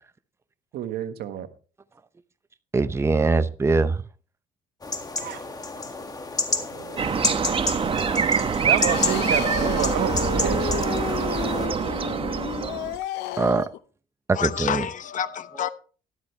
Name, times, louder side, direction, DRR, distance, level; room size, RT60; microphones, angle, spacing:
voice 1, 0.7-1.5 5.2-5.4 5.8-5.9 6.6-7.0 8.6-11.2, right 10 dB, 70° right, 1.5 m, -30 dB
voice 2, 2.7-4.0 13.4-13.7 14.3-14.8, right 3 dB, 15° right, 0.7 m, -22 dB
sound 1, 4.8-11.7, left 3 dB, 20° left, 1.9 m, -30 dB
sound 2, 7.0-13.0, right 6 dB, 35° right, 1.0 m, -25 dB
sound 3, 8.9-13.8, left 13 dB, 85° left, 0.7 m, -32 dB
voice 3, 14.3-15.7, left 8 dB, 50° left, 1.0 m, -28 dB
12.5 x 12.5 x 3.2 m
cardioid pair, 110°, 17 cm